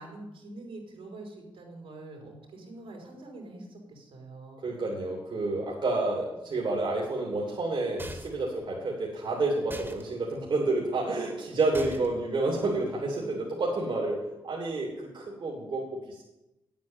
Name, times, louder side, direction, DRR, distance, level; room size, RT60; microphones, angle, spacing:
voice 1, 0.0-4.7 13.1-13.6, right 2 dB, 80° right, 1 dB, 4.2 m, -45 dB
voice 2, 4.6-16.2, right 2 dB, 60° right, -2 dB, 3.0 m, -29 dB
sound 1, 8.0-8.5 9.7-10.0 11.7-12.2, equal, 25° right, 2.2 m, -41 dB
9.1 x 8.6 x 9.1 m, 0.96 s
cardioid pair, 65°, 9 cm